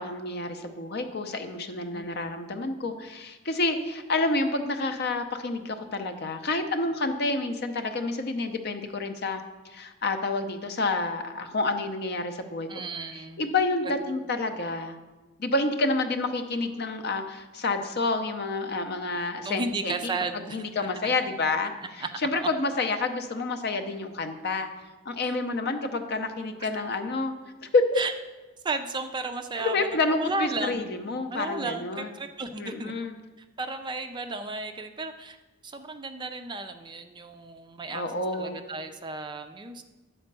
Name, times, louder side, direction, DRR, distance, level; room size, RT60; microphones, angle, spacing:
voice 1, 0.0-9.4 9.7-12.7 13.4-15.0 15.4-20.1 20.5-24.7 25.1-27.3 27.7-28.0 29.6-32.1 32.6-33.2 37.9-38.6, left 3 dB, 50° left, 7 dB, 0.7 m, -29 dB
voice 2, 1.9-2.3 12.7-13.4 19.4-20.9 21.8-22.1 22.4-22.5 25.2-25.4 28.0-28.1 28.6-29.9 30.2-30.9 31.3-32.9 33.6-35.4 35.6-38.0 38.3-39.8, right 3 dB, 20° right, 7 dB, 0.4 m, -34 dB
9.3 x 4.3 x 6.7 m, 1.2 s
head